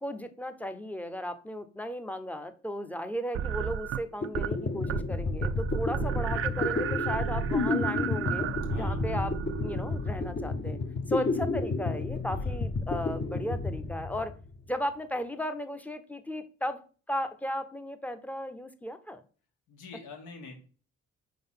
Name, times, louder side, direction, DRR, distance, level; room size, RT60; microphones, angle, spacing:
voice 1, 0.0-8.5 8.7-9.3 9.6-10.8 11.1-14.3 14.7-16.8 17.1-19.2, equal, 5° left, 9 dB, 0.7 m, -35 dB
sound 1, 3.3-4.5 4.8-5.1 5.4-10.2, right 11 dB, 50° right, 0.4 m, -33 dB
sound 2, 3.9-4.0 4.2-14.7, left 3 dB, 35° left, 0.8 m, -31 dB
voice 2, 19.7-20.6, left 3 dB, 80° left, 2 dB, 1.8 m, -46 dB
4.9 x 3.9 x 5.6 m, 0.39 s
cardioid pair, 90°, 30 cm